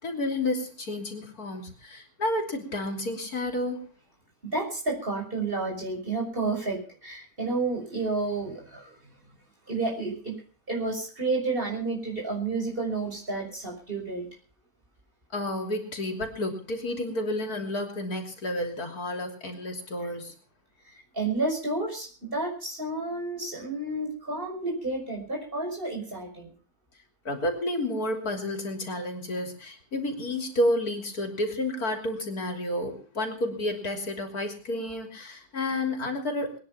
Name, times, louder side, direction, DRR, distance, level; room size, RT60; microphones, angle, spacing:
voice 1, 0.0-3.8 15.3-20.3 27.3-36.6, left 1 dB, 85° left, 4 dB, 3.7 m, -30 dB
voice 2, 4.4-9.0 9.7-10.3 10.7-14.3 20.8-26.5, right 3 dB, 35° right, -1 dB, 6.4 m, -31 dB
22.0 x 10.0 x 5.8 m, 0.40 s
omnidirectional pair, 1.5 m